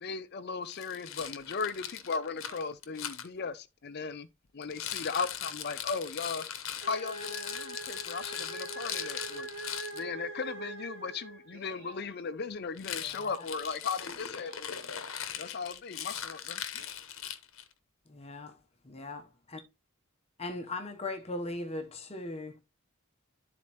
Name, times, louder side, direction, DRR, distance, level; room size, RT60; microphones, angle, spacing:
voice 1, 0.0-4.3 4.5-6.4 6.9-9.5 9.9-14.5 15.4-16.6, left 5 dB, 45° left, 0.5 m, -37 dB
Rattle, 0.7-3.3 4.6-10.0 12.7-17.7, left 9 dB, 60° left, 0.9 m, -40 dB
sound 1, 6.8-11.7, right 2 dB, 65° right, 1.5 m, -42 dB
voice 2, 11.5-12.2 14.1-14.9 16.7-16.9, right 1 dB, 45° right, 2.9 m, -55 dB
voice 3, 13.0-13.5 18.1-19.6 20.4-22.6, left 2 dB, 30° left, 0.8 m, -39 dB
12.5 x 4.2 x 2.9 m
head